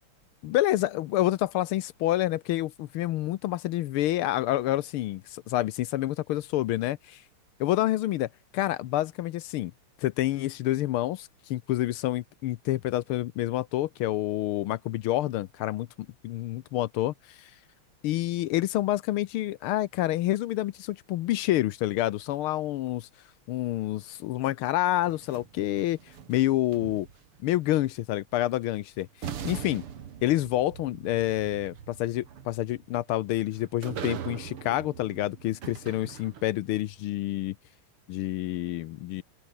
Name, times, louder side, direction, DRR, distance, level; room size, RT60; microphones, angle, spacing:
voice 1, 0.4-7.2 7.6-9.7 10.0-17.5 18.0-23.1 23.5-26.0 26.3-27.1 27.4-29.1 29.4-29.8 30.2-37.5 38.1-39.2, left 14 dB, 80° left, 1.6 m, -28 dB
sound 1, 25.1-27.4 28.7-28.8 29.2-36.7, right 8 dB, 80° right, 2.7 m, -41 dB
open air
omnidirectional pair, 2.4 m